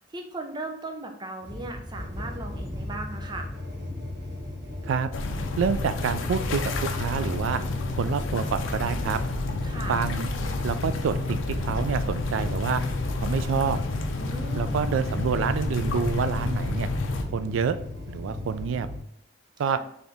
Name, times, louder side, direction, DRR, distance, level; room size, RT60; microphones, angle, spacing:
voice 1, 0.1-3.5 9.6-9.9 14.2-14.9 19.7-19.8, right 2 dB, 20° right, 4 dB, 0.5 m, -37 dB
sound 1, 1.4-19.0, left 1 dB, 55° right, 1.1 m, -37 dB
sound 2, 5.1-17.2, left 2 dB, 75° left, 0.5 m, -30 dB
voice 2, 5.6-6.6 6.9-7.6 7.9-9.2 9.9-10.3 10.6-12.8 13.2-13.8 14.5-16.9 17.3-17.8 18.1-18.9 19.6-19.8, right 6 dB, 75° right, 12 dB, 0.3 m, -27 dB
4.3 x 2.9 x 3.4 m, 0.73 s
head